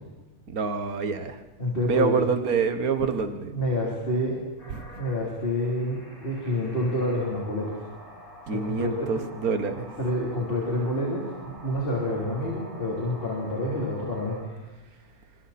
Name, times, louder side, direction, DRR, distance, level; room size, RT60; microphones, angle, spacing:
voice 1, 0.5-1.4 1.7-3.6 4.7-4.8 8.5-9.9, right 5 dB, 90° right, 9 dB, 1.8 m, -26 dB
voice 2, 1.6-2.2 3.5-4.4 5.0-7.8 8.5-9.1 10.0-14.5, left 1 dB, 40° left, -3 dB, 3.8 m, -28 dB
sound 1, 4.6-14.7, equal, 60° left, 8.6 m, -47 dB
26.5 x 25.5 x 4.3 m, 1.2 s
omnidirectional pair, 1.5 m